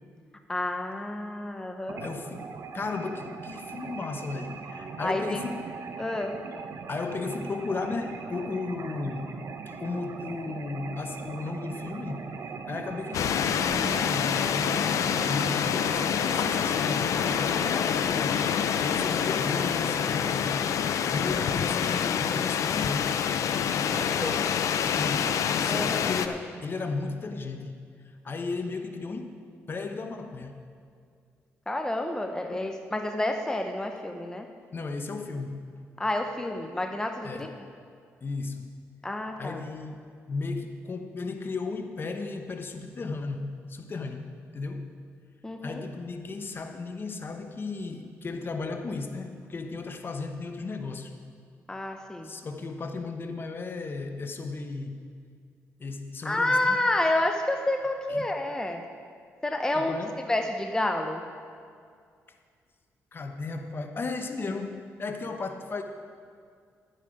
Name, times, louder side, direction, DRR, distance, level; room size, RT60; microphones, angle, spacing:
voice 1, 0.5-2.0 5.0-5.4 6.0-6.5 23.9-24.4 25.7-26.1 31.7-34.5 36.0-37.5 39.0-39.6 45.4-45.8 51.7-52.3 56.2-58.9 59.4-60.0 60.3-61.3, left 1 dB, 10° left, 5 dB, 0.7 m, -29 dB
sound 1, 1.9-20.0, right 5 dB, 60° right, 0.9 m, -40 dB
voice 2, 2.0-2.5 2.7-5.6 6.9-9.4 9.7-12.3 12.7-20.6 21.1-23.2 25.0-29.4 29.7-30.5 32.5-32.7 34.7-35.6 37.2-37.5 38.2-38.7 39.4-44.9 45.6-51.1 52.2-55.0 55.8-56.8 58.1-58.2 59.7-60.1 63.1-65.8, left 3 dB, 40° left, 6 dB, 1.0 m, -35 dB
sound 2, 13.1-26.3, left 8 dB, 70° left, 0.5 m, -26 dB
12.0 x 9.1 x 4.9 m, 2.2 s
cardioid pair, 80°, 6 cm